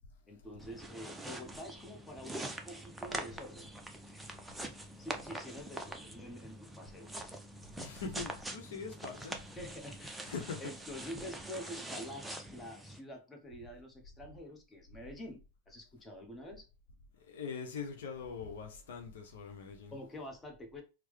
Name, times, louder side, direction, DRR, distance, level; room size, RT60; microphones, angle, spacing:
voice 1, 0.3-3.7 4.0-4.1 5.0-7.1 9.5-10.3 10.6-15.4 15.7-16.7 19.9-20.8, equal, 15° left, 0.9 m, -47 dB
sound 1, 0.6-13.0, right 1 dB, 5° right, 0.5 m, -44 dB
voice 2, 7.8-9.4 10.3-10.7 17.3-19.9, left 5 dB, 65° left, 0.7 m, -42 dB
4.5 x 2.0 x 3.1 m
figure-of-eight pair, 90°, 0 cm